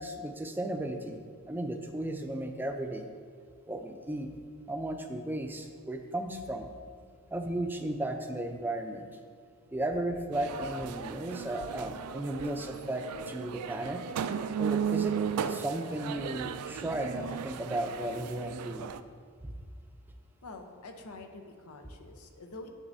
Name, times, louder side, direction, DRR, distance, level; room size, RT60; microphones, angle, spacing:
voice 1, 0.0-3.1 3.7-4.3 4.7-6.7 7.3-9.1 9.7-14.0 14.6-15.2 15.5-18.9 19.4-19.5, right 1 dB, 10° right, 5 dB, 0.4 m, -35 dB
sound 1, 10.3-19.0, right 7 dB, 90° right, 0.3 m, -35 dB
voice 2, 20.4-22.7, left 2 dB, 90° left, 5 dB, 0.8 m, -46 dB
10.0 x 6.2 x 2.7 m, 2.1 s
head